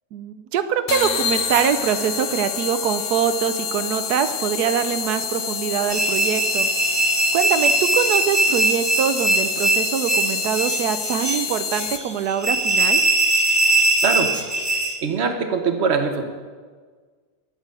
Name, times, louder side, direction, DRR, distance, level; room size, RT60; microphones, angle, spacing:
voice 1, 0.1-13.0, right 8 dB, 90° right, 10 dB, 1.3 m, -24 dB
sound 1, 0.9-12.3, left 7 dB, 60° left, 1.1 m, -28 dB
sound 2, 5.9-15.0, right 2 dB, 20° right, 0.9 m, -21 dB
voice 2, 14.0-14.3 15.0-16.2, right 5 dB, 45° right, 5 dB, 1.4 m, -22 dB
11.0 x 8.9 x 8.3 m, 1.5 s
omnidirectional pair, 1.6 m